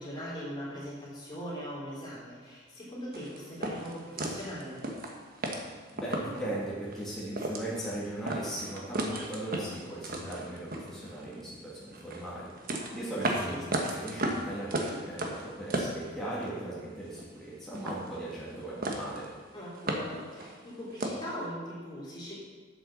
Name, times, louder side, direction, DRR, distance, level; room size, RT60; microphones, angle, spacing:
voice 1, 0.0-4.8 13.4-13.6 19.5-22.4, equal, 25° left, -7 dB, 3.2 m, -40 dB
sound 1, 3.1-6.5 6.9-7.0 7.3-7.9 8.3-11.4 11.9-16.6 16.9-17.5 17.7-18.6 18.8-19.3 19.6-21.3, right 1 dB, 50° right, 1.3 m, -35 dB
voice 2, 5.9-12.5 12.9-19.3, right 1 dB, ahead, -9 dB, 1.9 m, -38 dB
7.9 x 7.7 x 6.2 m, 1.4 s
head